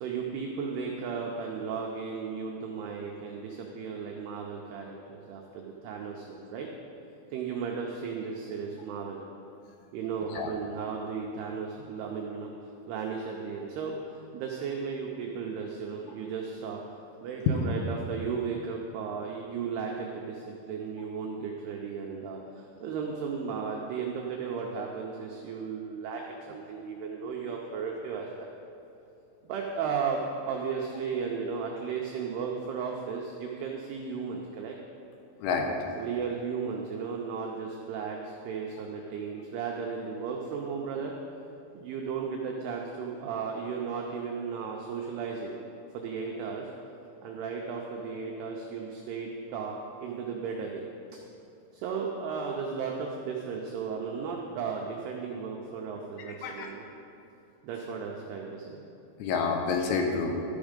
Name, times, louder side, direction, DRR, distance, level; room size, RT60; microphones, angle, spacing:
voice 1, 0.0-6.7 7.3-9.2 9.9-12.5 12.9-14.0 14.3-16.8 17.2-26.2 26.5-28.5 29.4-34.8 36.0-41.1 41.7-45.6 45.9-46.7 47.2-50.8 51.7-56.9 57.6-58.8, right 5 dB, 85° right, 0 dB, 2.3 m, -35 dB
voice 2, 59.2-60.3, left 5 dB, 80° left, 2 dB, 3.1 m, -28 dB
12.5 x 7.2 x 5.1 m, 2.7 s
omnidirectional pair, 5.6 m